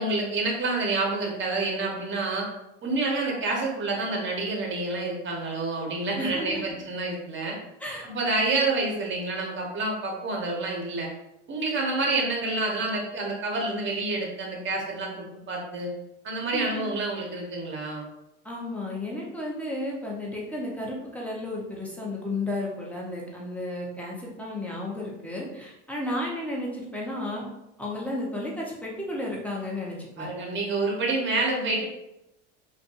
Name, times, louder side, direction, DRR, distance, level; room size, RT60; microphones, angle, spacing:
voice 1, 0.0-2.5 2.8-7.6 8.0-11.1 11.5-15.9 16.2-18.1 30.2-31.9, right 2 dB, 35° right, -1 dB, 0.9 m, -28 dB
voice 2, 6.1-6.6 7.8-8.1 16.5-16.8 18.4-27.4 27.8-30.3, left 1 dB, 5° left, -3 dB, 0.8 m, -33 dB
2.5 x 2.3 x 2.5 m, 0.87 s
hypercardioid pair, 85°, 36 cm